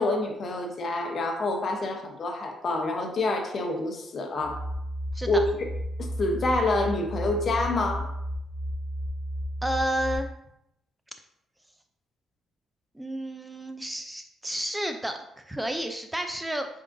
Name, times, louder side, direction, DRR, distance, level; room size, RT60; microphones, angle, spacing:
voice 1, 0.0-4.6 5.3-5.4 6.0-8.1, left 2 dB, 50° left, 4 dB, 0.8 m, -27 dB
sound 1, 4.4-10.2, equal, 15° left, 1.0 m, -33 dB
voice 2, 9.6-10.3 13.0-16.7, right 1 dB, 10° right, 6 dB, 0.4 m, -31 dB
5.4 x 3.7 x 2.6 m, 0.83 s
cardioid pair, 90°, 0 cm